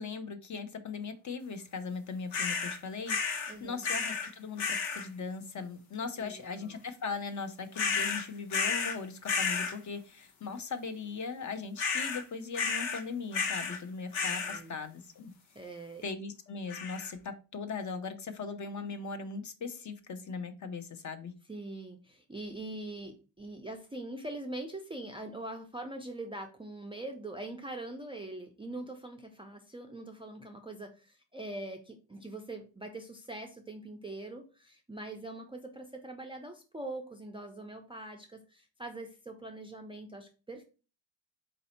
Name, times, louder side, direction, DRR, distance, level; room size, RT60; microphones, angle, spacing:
voice 1, 0.0-15.3 16.0-21.3, left 4 dB, 40° left, 8 dB, 0.7 m, -39 dB
sound 1, 2.3-2.8 3.1-3.5 3.8-4.3 4.6-5.1 7.8-9.0 9.3-9.8 11.8-12.2 12.5-13.0 13.3-13.8 14.1-14.6 16.7-17.1, left 5 dB, 85° left, 1.1 m, -32 dB
voice 2, 3.5-3.9 6.0-6.7 14.2-14.8 15.5-16.0 21.5-40.6, right 2 dB, 10° right, 4 dB, 0.4 m, -43 dB
4.2 x 2.7 x 4.1 m, 0.34 s
cardioid pair, 105°, 45 cm